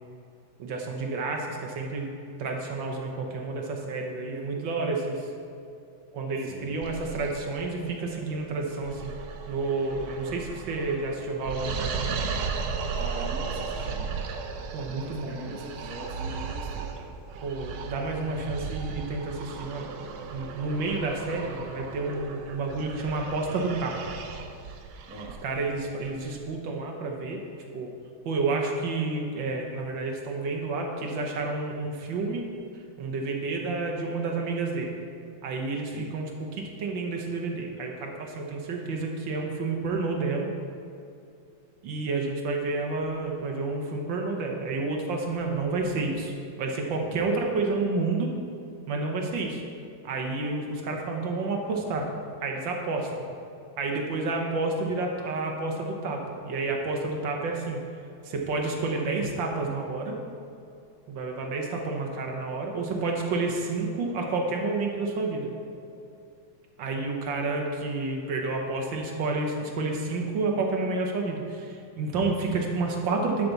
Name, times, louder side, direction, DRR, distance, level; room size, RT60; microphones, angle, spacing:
voice 1, 0.6-2.1 2.4-5.3 6.1-9.1 9.5-12.2 14.7-15.4 17.4-19.9 20.3-24.1 25.4-27.4 27.7-27.9 28.2-32.5 33.0-34.9 35.4-40.5 41.8-48.3 48.9-49.6 50.0-52.1 52.4-53.2 53.8-57.8 58.2-60.2 61.1-65.5 66.8-73.5, right 3 dB, 70° right, 1 dB, 1.6 m, -30 dB
voice 2, 6.4-6.8 13.0-14.2 14.8-16.9 25.1-25.4 35.9-36.1, right 2 dB, 10° right, -2 dB, 0.7 m, -41 dB
sound 1, 6.8-26.5, right 5 dB, 90° right, 1.6 m, -36 dB
11.5 x 5.9 x 4.0 m, 2.5 s
omnidirectional pair, 2.2 m